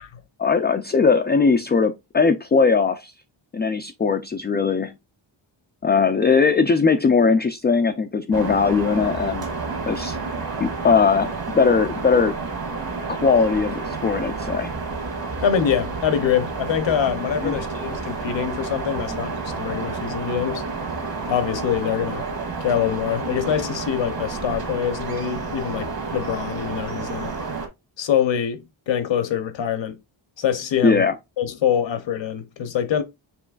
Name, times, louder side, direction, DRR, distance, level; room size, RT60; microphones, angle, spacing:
voice 1, 0.4-3.1 3.5-4.9 5.8-9.5 9.9-10.2 10.6-12.3 13.1-14.7 17.4-17.6 30.8-31.1, left 5 dB, 25° left, 0.3 m, -19 dB
sound 1, 8.3-27.7, right 4 dB, 50° right, 1.6 m, -30 dB
voice 2, 15.4-20.7 21.3-22.2 22.6-27.3 28.0-30.0 30.4-31.1 31.4-33.0, left 9 dB, 65° left, 0.9 m, -24 dB
6.1 x 3.0 x 2.4 m
wide cardioid pair, 110°, 47 cm